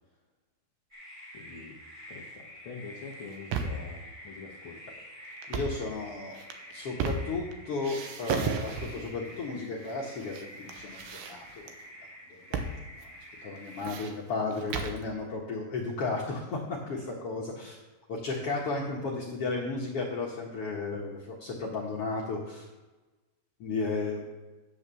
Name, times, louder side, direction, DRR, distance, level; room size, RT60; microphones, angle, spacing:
sound 1, 0.9-13.8, equal, 15° right, 3.1 m, -48 dB
voice 1, 1.3-1.8 2.1-5.0, left 4 dB, 85° left, -1 dB, 1.1 m, -45 dB
sound 2, 3.1-3.9 5.4-5.8 6.3-7.5 7.8-9.1 9.8-10.4 10.7-11.7 12.5-12.8 13.0-13.1 13.6-15.0, right 5 dB, 75° right, 2.5 m, -34 dB
voice 2, 5.5-6.4 6.7-11.7 12.3-17.8 18.1-22.7 23.6-24.2, left 3 dB, 55° left, -3 dB, 1.7 m, -34 dB
9.4 x 6.1 x 6.9 m, 1.2 s
omnidirectional pair, 4.3 m